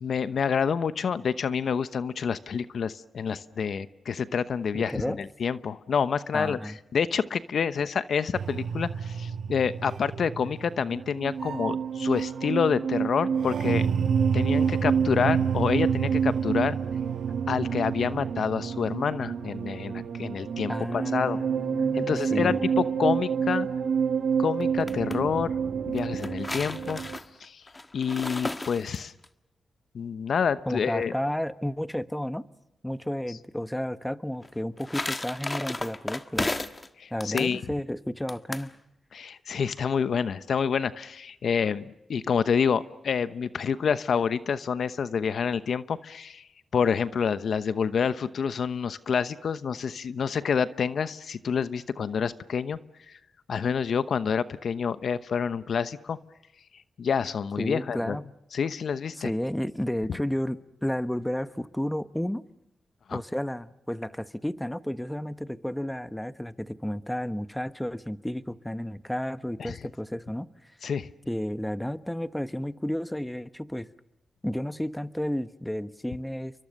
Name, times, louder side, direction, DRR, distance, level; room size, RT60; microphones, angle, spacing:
voice 1, 0.0-13.9 14.3-16.8 17.5-21.4 21.9-23.7 24.4-25.6 25.9-27.0 27.4-27.6 27.9-29.1 29.9-31.1 37.0-37.6 39.1-46.5 46.7-52.8 53.1-53.2 53.5-56.2 57.0-58.2 58.5-59.3 63.1-63.2 69.6-69.8 70.8-71.1, left 6 dB, 70° left, 13 dB, 0.9 m, -28 dB
voice 2, 4.7-5.2 6.3-6.8 20.7-22.6 30.7-32.4 32.8-36.5 37.1-38.7 57.6-58.2 59.1-62.4 63.1-70.8 71.3-73.9 74.4-76.5, equal, 5° left, 12 dB, 1.2 m, -32 dB
sound 1, 8.3-27.2, right 7 dB, 75° right, 1.5 m, -28 dB
sound 2, 24.6-25.2 26.0-29.3 34.4-36.9 37.2-37.5 38.3-38.7, left 2 dB, 25° left, 1.5 m, -34 dB
30.0 x 23.5 x 6.6 m, 0.92 s
supercardioid pair, 50°, 0 cm